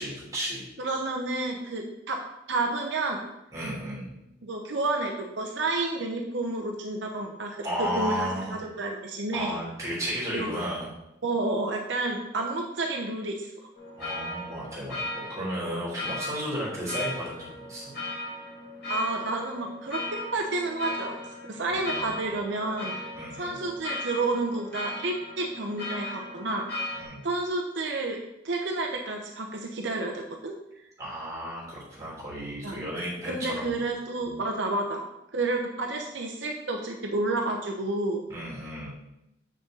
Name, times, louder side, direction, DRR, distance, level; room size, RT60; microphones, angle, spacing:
voice 1, 0.0-0.7 3.5-4.1 7.6-8.5 9.3-10.9 14.0-15.0 15.3-17.9 21.7-22.2 23.1-23.6 26.9-27.3 31.0-33.8 34.2-34.4 38.3-38.9, equal, 15° right, -7 dB, 3.3 m, -33 dB
voice 2, 0.8-2.2 2.5-3.2 4.4-8.3 8.8-9.5 10.3-10.5 11.2-13.5 18.9-20.0 20.3-23.0 23.3-27.0 27.2-28.2 28.4-30.5 32.6-32.8 33.2-35.0 35.3-38.2, right 2 dB, 70° right, 1 dB, 0.9 m, -30 dB
sound 1, 13.7-27.0, left 2 dB, 55° left, 2.4 m, -37 dB
7.7 x 6.5 x 3.9 m, 0.87 s
head